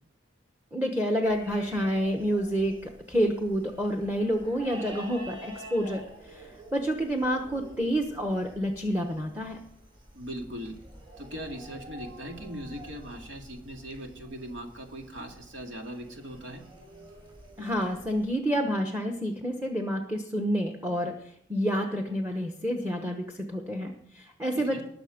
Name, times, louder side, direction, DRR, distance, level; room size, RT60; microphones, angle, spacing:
voice 1, 0.7-9.6 17.6-24.8, equal, 10° right, 4 dB, 1.1 m, -29 dB
sound 1, 1.2-18.3, equal, 25° right, 5.2 m, -48 dB
voice 2, 10.1-10.8 11.2-16.6 24.5-24.8, equal, 85° right, 2 dB, 2.3 m, -40 dB
20.0 x 6.9 x 5.2 m, 0.68 s
head